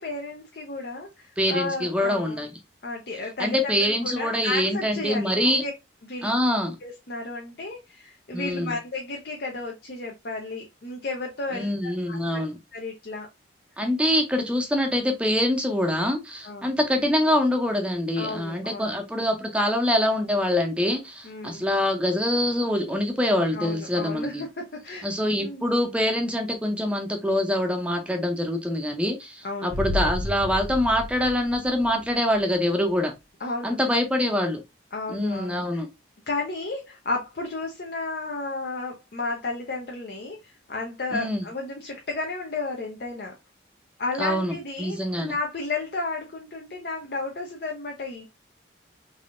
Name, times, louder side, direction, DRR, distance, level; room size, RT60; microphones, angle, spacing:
voice 1, 0.0-2.4 2.8-5.7 6.1-6.3 6.8-12.2 12.7-13.3 16.4-16.7 18.2-19.0 21.2-21.6 23.5-25.1 25.4-25.7 29.4-29.8 33.4-33.8 34.9-35.8 36.3-43.3 44.0-48.2, left 3 dB, 50° left, 0.7 m, -33 dB
voice 2, 1.4-2.5 3.4-5.6 6.2-6.8 8.3-8.7 11.5-12.6 13.8-24.4 25.0-33.1 33.6-34.6 35.1-35.9 41.1-41.5 44.2-45.3, left 1 dB, 5° right, 0.6 m, -25 dB
sound 1, 29.7-32.4 32.7-32.8, left 1 dB, 75° right, 1.5 m, -32 dB
3.5 x 3.3 x 2.5 m
head